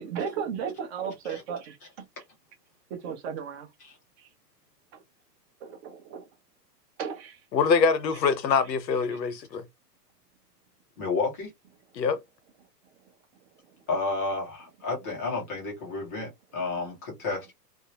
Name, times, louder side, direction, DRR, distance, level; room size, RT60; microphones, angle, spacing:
voice 1, 0.0-2.1 2.9-3.7 4.2-4.3 4.9-5.0 5.6-6.3 7.0-7.4, right 7 dB, 40° right, 0.7 m, -35 dB
voice 2, 7.5-9.6 11.9-12.2, left 5 dB, 90° left, 0.9 m, -24 dB
voice 3, 11.0-11.5 13.9-17.5, left 3 dB, 15° left, 0.3 m, -31 dB
2.6 x 2.0 x 2.8 m
hypercardioid pair, 135°, 50 cm